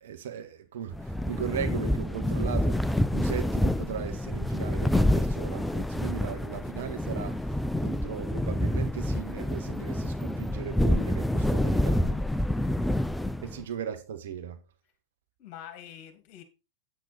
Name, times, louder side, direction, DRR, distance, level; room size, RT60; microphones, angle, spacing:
voice 1, 0.0-7.4 7.8-12.2 13.4-14.6, right 8 dB, 60° right, 1.6 m, -37 dB
sound 1, 0.9-13.6, left 1 dB, 5° left, 0.4 m, -27 dB
voice 2, 15.4-16.4, left 10 dB, 40° left, 2.5 m, -46 dB
8.6 x 8.2 x 4.3 m
figure-of-eight pair, 90°, 0 cm